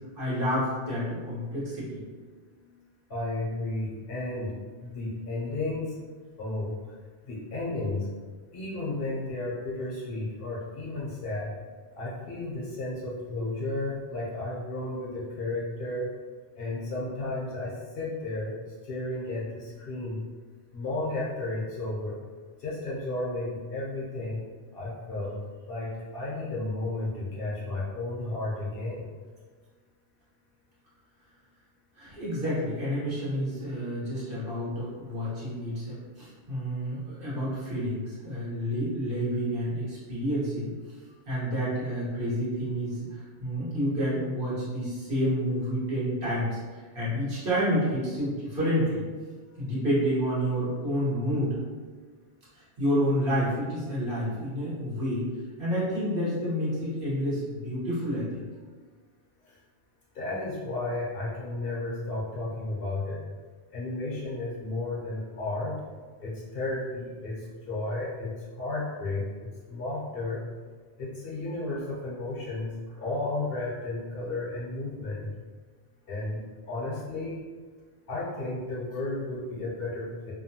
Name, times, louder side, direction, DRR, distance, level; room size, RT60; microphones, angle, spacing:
voice 1, 0.2-2.2 31.9-40.7 41.3-49.0 49.6-51.6 52.5-55.3 55.6-58.5, equal, 55° right, -10 dB, 1.3 m, -29 dB
voice 2, 3.1-4.5 4.8-6.0 6.4-6.7 7.3-8.1 8.5-11.5 12.0-16.1 16.6-18.5 18.8-20.2 20.7-22.2 22.6-24.4 24.7-25.4 25.7-29.1 60.1-63.2 63.7-65.8 66.2-68.3 68.6-70.4 71.0-72.7 73.0-75.3 76.1-76.4 76.7-77.4 78.1-80.3, left 2 dB, 60° left, -6 dB, 0.8 m, -33 dB
2.8 x 2.2 x 2.7 m, 1.4 s
omnidirectional pair, 1.2 m